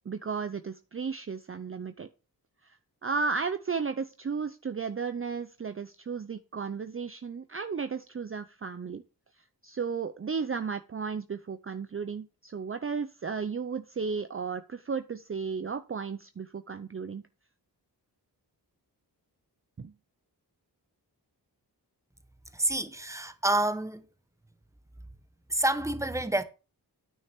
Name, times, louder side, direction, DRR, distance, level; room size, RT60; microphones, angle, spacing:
voice 1, 0.1-2.1 2.6-2.8 3.0-9.0 9.6-17.2 19.8-19.9, right 5 dB, 30° right, 0.6 m, -34 dB
voice 2, 22.5-24.1 25.5-26.4, right 1 dB, 5° right, 1.0 m, -28 dB
9.2 x 6.3 x 4.4 m
cardioid pair, 65°, 40 cm